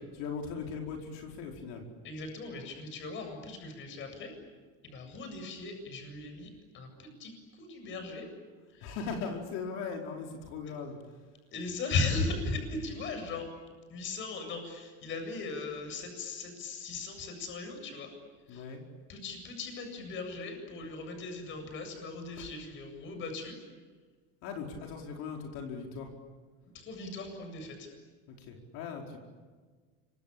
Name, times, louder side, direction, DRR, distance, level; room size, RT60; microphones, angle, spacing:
voice 1, 0.2-1.8 8.8-11.0 18.5-18.8 22.4-22.5 24.4-26.1 28.3-29.2, left 5 dB, 60° left, 2 dB, 4.8 m, -39 dB
voice 2, 2.0-4.3 4.8-8.3 8.7-9.0 10.7-10.8 11.5-13.5 13.9-18.1 18.5-18.7 19.1-23.5 26.7-27.9, left 3 dB, 40° left, 5 dB, 7.8 m, -38 dB
27.5 x 25.0 x 8.7 m, 1.4 s
cardioid pair, 145°, 30 cm